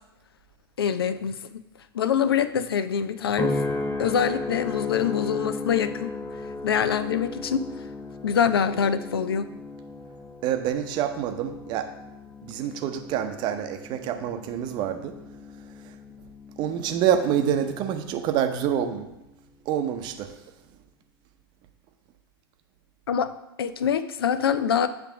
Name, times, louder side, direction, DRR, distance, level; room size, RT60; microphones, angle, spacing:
voice 1, 0.8-1.6 1.9-3.6 4.0-6.1 6.6-7.6 8.2-9.5 23.1-23.3 23.6-24.9, left 8 dB, 70° left, 13 dB, 0.5 m, -24 dB
sound 1, 3.4-17.9 18.4-18.8, left 2 dB, 10° left, 0.6 m, -35 dB
voice 2, 10.4-11.9 12.4-15.2 15.8-16.0 16.6-19.1 19.7-20.4, right 9 dB, 35° right, 6 dB, 0.7 m, -27 dB
8.1 x 3.4 x 5.8 m, 0.90 s
figure-of-eight pair, 100°, 13 cm